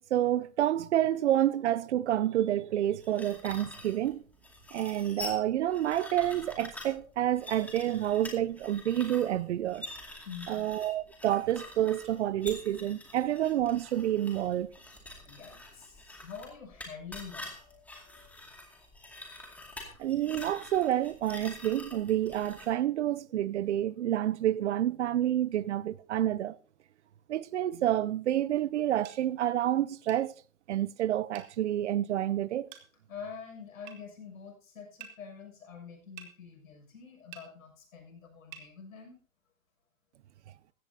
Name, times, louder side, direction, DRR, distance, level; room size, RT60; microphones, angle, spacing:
voice 1, 0.1-4.2 4.7-9.9 10.5-14.7 20.0-26.6 27.3-30.3 30.7-32.7, right 12 dB, 55° right, 0.6 m, -29 dB
sound 1, 3.0-22.7, left 2 dB, 5° left, 2.2 m, -46 dB
voice 2, 10.2-10.7 15.2-18.4 19.8-20.0 33.1-39.2, left 6 dB, 75° left, 6.5 m, -46 dB
sound 2, 29.0-29.2 30.1-30.3 31.3-31.5 32.7-32.9 33.9-34.0 35.0-35.2 36.2-36.3 37.3-37.5 38.5-38.7, right 9 dB, 35° right, 2.0 m, -47 dB
16.5 x 14.5 x 2.8 m
hypercardioid pair, 145°, 42 cm